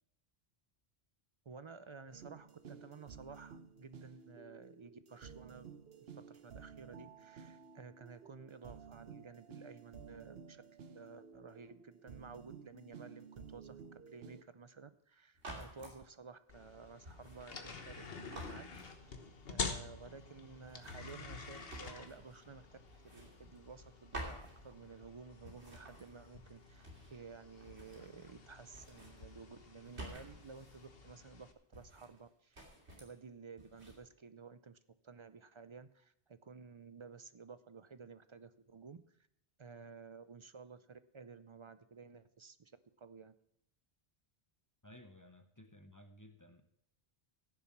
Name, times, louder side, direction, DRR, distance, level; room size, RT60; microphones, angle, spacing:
voice 1, 1.5-5.7 6.1-10.6 10.9-18.6 19.5-22.8 23.0-32.6 33.0-34.8 35.0-39.0 39.6-42.7 43.0-43.3, right 5 dB, 40° right, 13 dB, 0.4 m, -54 dB
sound 1, 2.1-14.4, right 6 dB, 70° right, 1.1 m, -54 dB
Backpack Pickup Putdown, 15.4-16.0 17.0-18.0 18.3-19.4 20.6-22.5 22.8-23.9 24.1-25.1 25.4-27.2 27.5-28.4 28.7-30.9 31.7-32.3 32.5-33.2 33.6-34.0, right 1 dB, 85° right, 3.2 m, -51 dB
sound 2, 16.5-31.5, left 4 dB, 65° left, 1.4 m, -48 dB
voice 2, 44.8-46.6, left 1 dB, 20° left, 6 dB, 0.8 m, -57 dB
15.0 x 7.1 x 5.9 m, 0.76 s
omnidirectional pair, 1.1 m